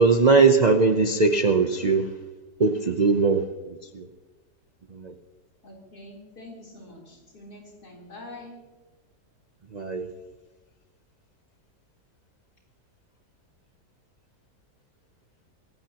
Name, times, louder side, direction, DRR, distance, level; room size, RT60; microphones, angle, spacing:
voice 1, 0.0-2.1 2.6-4.1 4.9-5.1 9.7-10.1, right 4 dB, 45° right, 6 dB, 0.6 m, -20 dB
voice 2, 5.6-8.6, left 1 dB, 65° left, -1 dB, 4.4 m, -45 dB
24.5 x 16.0 x 2.9 m, 1.2 s
omnidirectional pair, 1.8 m